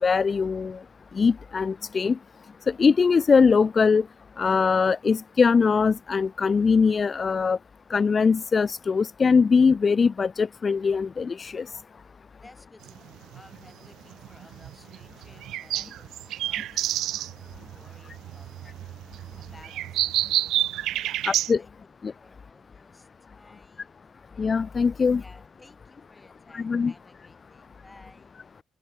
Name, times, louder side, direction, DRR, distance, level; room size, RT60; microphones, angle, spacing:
voice 1, 0.0-0.8 1.1-2.2 2.7-4.0 4.4-7.6 7.9-11.7 21.3-21.6 22.0-22.1 24.4-25.2 26.5-26.9, left 5 dB, 40° left, 0.4 m, -21 dB
voice 2, 12.4-20.4 21.0-21.3 21.5-21.7 22.2-24.0 25.2-28.4, left 2 dB, 15° left, 5.9 m, -56 dB
sound 1, 12.8-21.5, right 13 dB, 85° right, 0.4 m, -30 dB
open air
cardioid pair, 90°, 0 cm